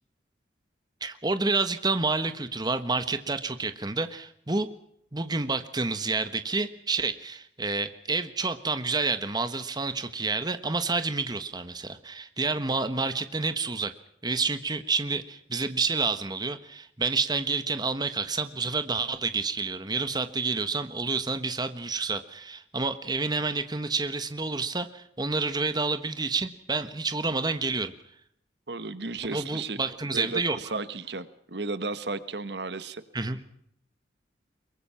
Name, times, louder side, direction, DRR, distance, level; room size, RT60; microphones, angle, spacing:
voice 1, 1.0-4.7 5.1-13.9 14.2-27.9 29.3-30.6 33.1-33.4, right 3 dB, 25° right, 10 dB, 1.3 m, -29 dB
voice 2, 28.7-29.8 30.1-33.0, right 3 dB, 65° right, 13 dB, 1.3 m, -34 dB
23.5 x 23.0 x 5.8 m, 0.72 s
head